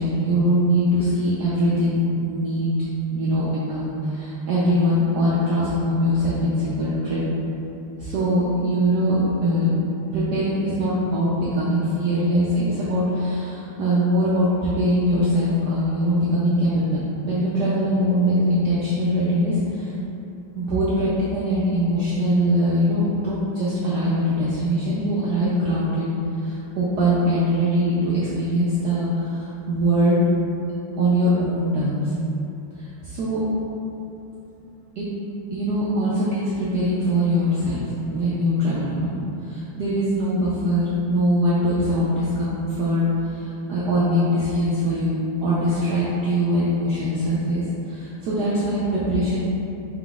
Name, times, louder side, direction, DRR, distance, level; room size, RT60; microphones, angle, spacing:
voice 1, 0.0-2.7 3.1-7.2 8.0-9.8 10.1-19.9 20.6-30.3 31.0-32.1 32.8-33.4 35.0-35.1 35.5-49.4, equal, 85° right, -8 dB, 0.8 m, -22 dB
4.4 x 3.8 x 2.3 m, 2.8 s
omnidirectional pair, 2.4 m